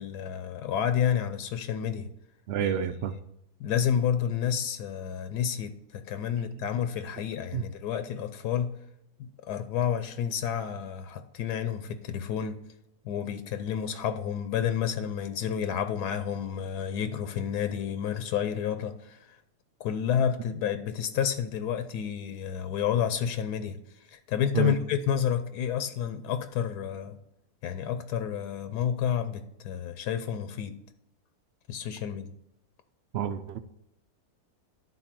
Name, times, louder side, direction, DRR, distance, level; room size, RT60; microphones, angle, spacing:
voice 1, 0.0-2.1 2.6-2.9 3.6-8.7 9.2-12.6 13.0-19.4 19.8-23.8 24.1-27.2 27.6-30.8 31.7-32.3, left 8 dB, 80° left, 1.2 m, -30 dB
voice 2, 2.5-3.1 7.5-7.6 24.5-24.7 33.1-33.6, right 9 dB, 85° right, 0.5 m, -28 dB
11.0 x 4.0 x 5.9 m
omnidirectional pair, 1.7 m